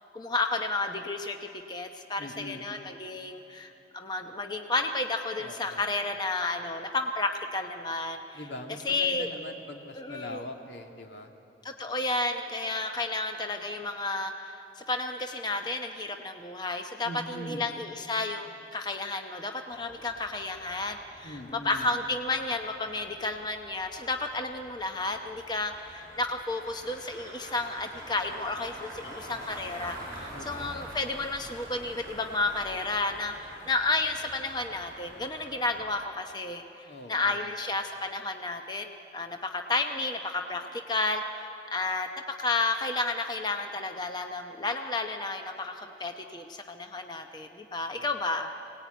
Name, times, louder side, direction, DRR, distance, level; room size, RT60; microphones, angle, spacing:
voice 1, 0.1-8.4 8.8-9.3 10.0-10.4 11.6-48.5, left 3 dB, 25° left, 5 dB, 0.8 m, -32 dB
voice 2, 2.2-2.6 5.4-5.9 8.3-11.3 17.0-17.7 21.2-21.9 30.3-30.8 36.9-37.5 47.9-48.2, left 1 dB, 80° left, 3 dB, 2.0 m, -42 dB
sound 1, 19.7-35.8, right 1 dB, 20° right, 7.4 m, -46 dB
22.0 x 18.5 x 9.2 m, 2.8 s
head